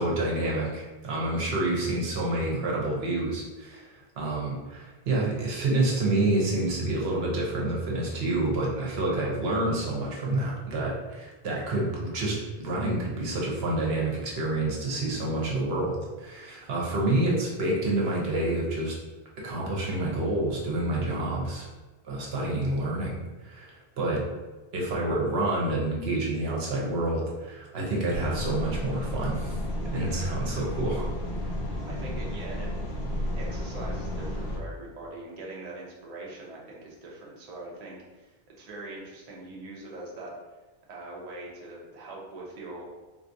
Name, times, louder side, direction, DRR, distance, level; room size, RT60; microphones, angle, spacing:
voice 1, 0.0-19.0 19.4-21.7 22.0-24.2 24.7-29.6 29.9-31.1, right 2 dB, 75° right, -3 dB, 1.0 m, -28 dB
sound 1, 28.1-34.6, equal, 80° left, 1.1 m, -32 dB
voice 2, 31.9-32.7 33.4-40.4 40.9-42.8, right 2 dB, 45° right, -3 dB, 0.6 m, -42 dB
3.7 x 2.4 x 2.5 m, 1.2 s
omnidirectional pair, 1.1 m